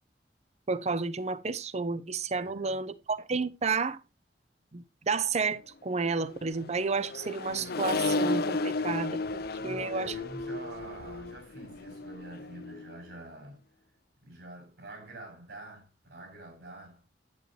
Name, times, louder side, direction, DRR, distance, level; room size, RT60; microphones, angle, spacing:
voice 1, 0.7-4.0 4.7-10.1, right 4 dB, 40° right, 0.7 m, -31 dB
voice 2, 2.3-2.8 9.6-13.6 14.2-17.0, right 1 dB, 70° right, 7.0 m, -46 dB
Accelerating revving vroom, 6.3-13.0, left 3 dB, 60° left, 0.7 m, -33 dB
10.5 x 9.3 x 2.9 m
head